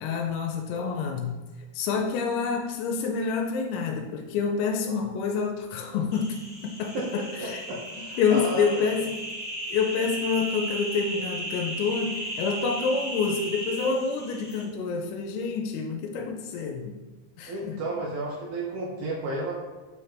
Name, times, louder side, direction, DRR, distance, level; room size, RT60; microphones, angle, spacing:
voice 1, 0.0-1.4 1.7-7.6 8.2-9.2 9.7-17.0 17.4-17.8, left 5 dB, 85° left, 3 dB, 3.3 m, -28 dB
sound 1, 6.1-14.6, right 1 dB, 30° left, 1.5 m, -36 dB
voice 2, 7.4-8.8 17.5-19.5, right 2 dB, 75° right, -4 dB, 2.2 m, -32 dB
9.1 x 3.3 x 5.7 m, 1.2 s
omnidirectional pair, 6.0 m